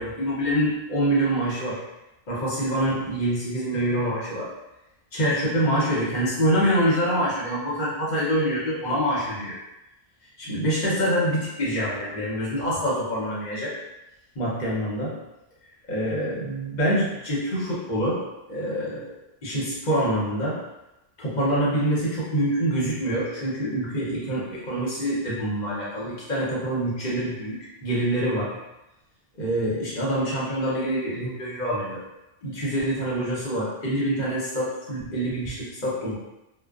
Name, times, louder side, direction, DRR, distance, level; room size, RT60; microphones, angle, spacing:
voice 1, 0.0-1.8 2.3-4.5 5.1-9.6 10.4-13.7 14.4-15.2 15.9-18.2 18.5-19.1 19.4-20.6 21.2-28.6 29.4-32.0 32.4-36.2, right 1 dB, 45° left, -7 dB, 0.8 m, -25 dB
2.3 x 2.2 x 2.3 m, 0.93 s
omnidirectional pair, 1.2 m